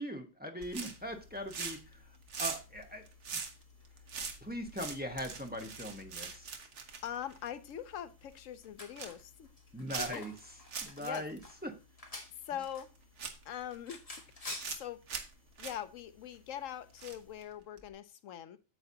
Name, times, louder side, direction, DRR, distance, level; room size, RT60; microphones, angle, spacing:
voice 1, 0.0-1.8 2.4-3.0 4.4-6.5 9.7-10.3 10.8-11.7, equal, 10° right, 3 dB, 1.0 m, -40 dB
sound 1, 0.6-17.4, left 2 dB, 30° left, 1.7 m, -53 dB
sound 2, 0.6-1.1 1.4-1.9 2.2-7.8 8.2-8.4 8.7-9.2 9.9-10.4 10.7-11.1 11.4-11.5 12.6-12.7 13.2-13.8 14.3-14.8 15.1-15.3 15.6-15.7 17.0-17.4 17.8-17.9, right 5 dB, 65° right, 1.4 m, -41 dB
voice 2, 7.0-9.5 10.0-10.2 11.0-11.3 12.4-12.9 13.5-14.0 14.8-15.0 15.6-18.6, left 10 dB, 85° left, 13 dB, 1.1 m, -42 dB
9.0 x 7.8 x 2.8 m, 0.30 s
omnidirectional pair, 1.3 m